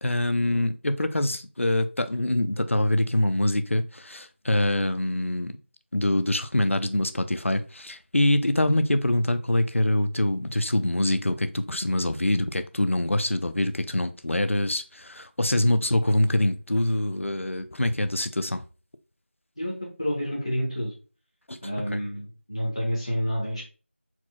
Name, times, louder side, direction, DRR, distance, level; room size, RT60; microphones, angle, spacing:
voice 1, 0.0-5.6 5.9-18.6 21.5-21.6 21.9-22.0, left 1 dB, 90° left, 10 dB, 0.6 m, -24 dB
voice 2, 19.6-20.9 21.6-23.6, equal, 25° left, -4 dB, 0.9 m, -29 dB
4.4 x 4.1 x 2.2 m, 0.35 s
figure-of-eight pair, 180°, 7 cm